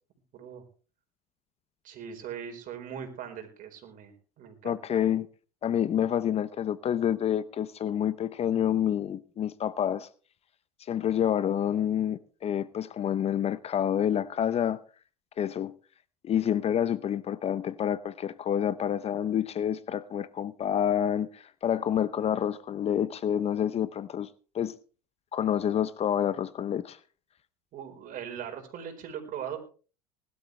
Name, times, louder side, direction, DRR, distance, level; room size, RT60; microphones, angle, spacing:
voice 1, 0.3-0.6 1.8-5.0 27.7-29.7, right 8 dB, 45° right, 4.6 m, -40 dB
voice 2, 4.6-5.3 5.6-10.1 10.9-14.8 15.4-15.7 16.2-24.3 24.5-24.7 25.3-27.0, left 9 dB, 30° left, 0.7 m, -28 dB
20.0 x 12.5 x 3.3 m
hypercardioid pair, 90°, 20 cm